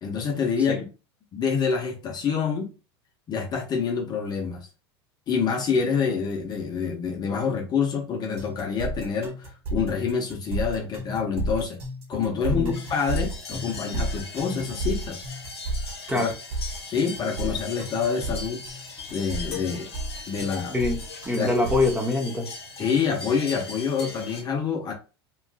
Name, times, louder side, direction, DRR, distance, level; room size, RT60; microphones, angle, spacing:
voice 1, 0.0-0.9 1.3-2.7 3.3-4.7 5.3-11.8 12.1-15.2 16.2-16.3 16.9-18.9 19.1-19.9 20.3-20.7 21.3-21.5 22.8-24.9, left 6 dB, 30° left, 0.7 m, -27 dB
sound 1, 8.4-22.0, right 1 dB, 50° right, 1.1 m, -32 dB
sound 2, 12.7-24.4, left 4 dB, 80° left, 0.8 m, -39 dB
voice 2, 21.3-22.5, left 2 dB, 10° right, 0.9 m, -24 dB
3.0 x 2.5 x 2.3 m
hypercardioid pair, 90°, 13 cm